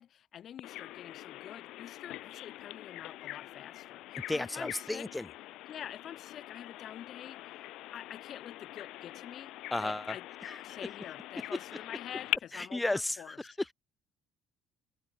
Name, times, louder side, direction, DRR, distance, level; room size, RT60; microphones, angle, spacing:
voice 1, 0.0-5.1 5.7-9.5 9.8-10.2 10.6-13.4, left 10 dB, 45° left, 2.1 m, -47 dB
Bird vocalization bird call bird song, 0.6-12.4, left 16 dB, 70° left, 0.5 m, -43 dB
voice 2, 4.3-5.3 9.7-10.1 10.4-10.8 11.4-11.6 12.5-13.7, left 2 dB, 10° left, 1.0 m, -34 dB
cardioid pair, 130°, 0 cm